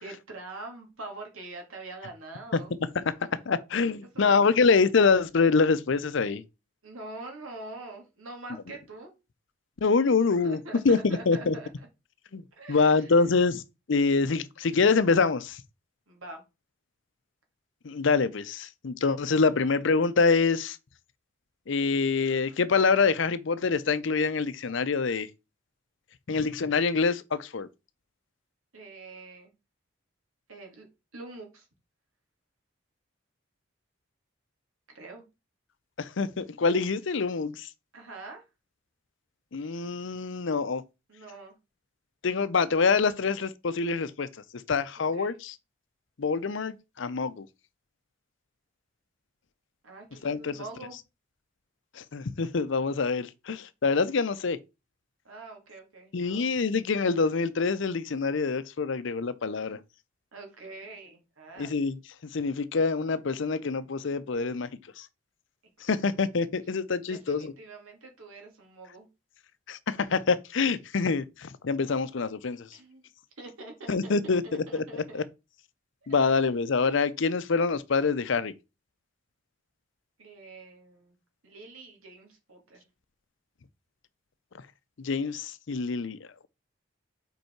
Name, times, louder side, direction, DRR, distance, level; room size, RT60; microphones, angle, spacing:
voice 1, 0.0-2.8 4.1-4.4 6.8-9.1 10.4-11.9 12.6-13.2 16.1-16.4 28.7-29.5 30.5-30.9 31.1-31.7 34.9-35.2 37.9-38.5 41.1-41.6 45.1-45.4 49.8-51.0 55.2-56.5 60.3-61.7 67.0-69.1 72.7-73.0 73.4-75.2 76.1-76.4 80.2-81.2 81.4-82.8, right 2 dB, 85° right, 2.4 m, -44 dB
voice 2, 3.5-6.4 9.8-10.6 10.8-11.6 12.3-12.4 12.7-13.6 13.9-15.6 17.8-20.8 21.7-25.3 26.3-27.7 36.0-37.7 39.5-40.8 42.2-44.3 44.7-45.5 46.2-47.5 50.2-50.5 52.0-54.6 56.1-59.8 61.6-62.0 62.3-64.7 65.0-65.1 65.8-67.5 69.7-72.7 73.9-75.2 76.1-78.5 85.0-86.2, left 4 dB, 65° left, 0.5 m, -25 dB
5.3 x 4.7 x 4.5 m
head